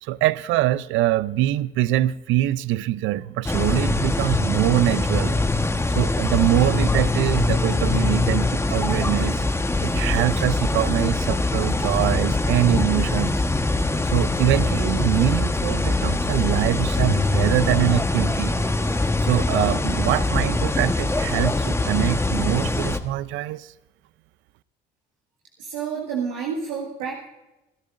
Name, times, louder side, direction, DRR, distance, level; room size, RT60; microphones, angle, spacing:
voice 1, 0.0-5.4 5.9-9.5 9.7-13.4 14.0-18.6 19.2-23.7, right 15 dB, 70° right, 0.5 m, -23 dB
sound 1, 3.4-23.0, left 2 dB, 10° left, 1.2 m, -23 dB
voice 2, 25.6-27.3, right 6 dB, 90° right, 1.9 m, -29 dB
26.5 x 12.0 x 2.6 m
supercardioid pair, 65°, 21 cm